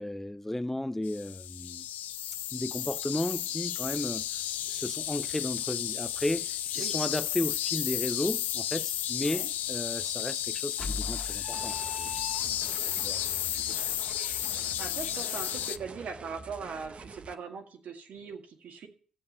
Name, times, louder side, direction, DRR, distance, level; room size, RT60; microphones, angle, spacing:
voice 1, 0.0-1.9 2.5-4.4 4.7-12.1 12.8-13.2 13.6-13.8, left 1 dB, 10° left, 0.4 m, -34 dB
sound 1, 1.0-15.8, left 12 dB, 80° left, 0.4 m, -33 dB
sound 2, 10.8-12.9, left 3 dB, 25° left, 2.0 m, -39 dB
sound 3, 11.5-17.3, right 4 dB, 45° right, 0.9 m, -46 dB
voice 2, 14.8-18.9, right 5 dB, 70° right, 1.9 m, -40 dB
12.0 x 7.7 x 5.4 m
supercardioid pair, 50°, 3 cm